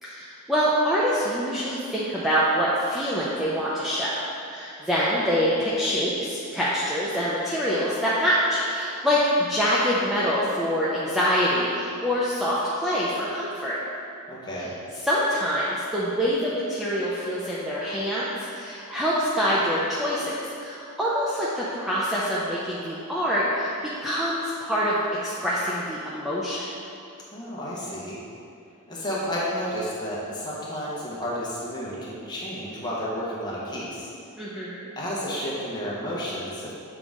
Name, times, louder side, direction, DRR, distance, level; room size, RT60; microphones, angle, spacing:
voice 1, 0.0-4.2 4.5-13.8 15.0-23.7 24.0-25.0 25.2-26.6 34.4-34.9, equal, ahead, -9 dB, 0.5 m, -25 dB
voice 2, 14.3-14.7 27.3-28.2 28.9-34.1 34.9-36.7, equal, 20° left, -7 dB, 1.2 m, -31 dB
6.9 x 3.8 x 3.6 m, 2.6 s
head